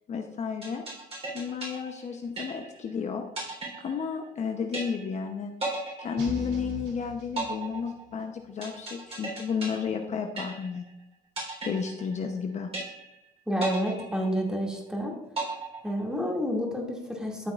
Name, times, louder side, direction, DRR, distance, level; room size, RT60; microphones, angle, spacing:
voice 1, 0.1-0.8 1.3-5.5 6.0-10.8 11.6-12.7, left 6 dB, 45° left, 4 dB, 0.8 m, -32 dB
sound 1, 0.6-2.9 3.4-4.4 4.7-5.3 5.6-6.9 7.4-10.9 11.4-12.4 12.7-13.3 13.6-14.9 15.4-16.4, right 3 dB, 35° right, 3.8 m, -36 dB
sound 2, 6.2-8.1, equal, 75° right, 2.8 m, -40 dB
voice 2, 13.5-15.1 15.8-17.5, equal, 5° right, -1 dB, 2.4 m, -29 dB
13.0 x 7.3 x 2.5 m, 0.81 s
cardioid pair, 110°, 17 cm